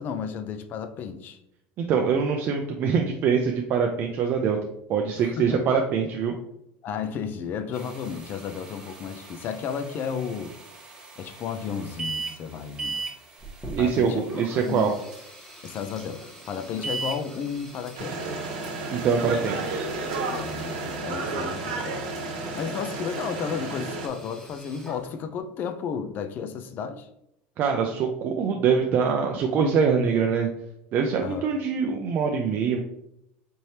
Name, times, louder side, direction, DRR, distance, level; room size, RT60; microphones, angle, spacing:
voice 1, 0.0-1.4 5.2-5.6 6.8-10.5 11.2-13.0 13.8-14.8 15.6-18.3 20.3-22.0 22.5-27.1 31.2-31.5, left 7 dB, 40° left, 0.4 m, -33 dB
voice 2, 1.8-4.6 4.9-6.3 13.8-14.9 18.9-19.8 27.6-30.5 30.9-32.8, right 6 dB, 40° right, 0.4 m, -24 dB
sound 1, 7.7-21.0, right 4 dB, 15° right, 0.9 m, -40 dB
Sink (filling or washing), 13.4-25.4, right 1 dB, 10° left, 0.9 m, -45 dB
sound 2, 18.0-24.1, right 3 dB, 90° right, 0.9 m, -32 dB
4.4 x 3.2 x 2.8 m
cardioid pair, 145°, 5 cm